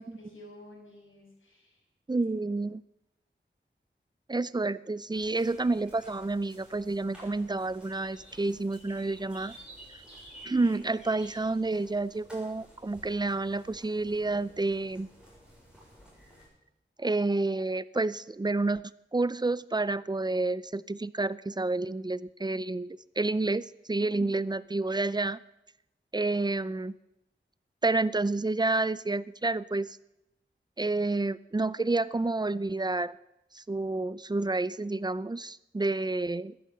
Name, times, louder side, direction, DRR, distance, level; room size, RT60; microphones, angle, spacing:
voice 1, 0.2-1.8 24.0-24.4, equal, 75° left, -2 dB, 6.5 m, -49 dB
voice 2, 2.1-2.8 4.3-9.6 10.4-15.1 17.0-18.8 19.1-25.4 26.1-26.9 27.8-30.0 30.8-33.1 33.5-36.6, right 2 dB, 20° right, 18 dB, 0.5 m, -29 dB
sound 1, 5.1-16.5, right 1 dB, 5° right, 6.9 m, -53 dB
14.5 x 10.5 x 7.6 m, 0.87 s
wide cardioid pair, 75°, 20 cm